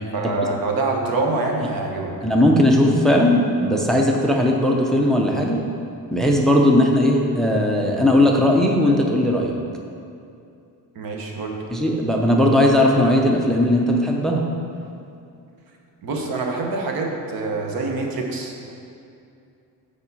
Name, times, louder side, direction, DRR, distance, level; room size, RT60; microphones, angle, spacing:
voice 1, 0.1-2.1 10.9-11.6 16.0-18.7, right 3 dB, 70° right, 1 dB, 1.2 m, -25 dB
voice 2, 2.2-5.6 6.1-9.6 11.7-14.4, left 1 dB, ahead, 0 dB, 0.5 m, -18 dB
7.2 x 4.9 x 6.9 m, 2.6 s
wide cardioid pair, 170°, 37 cm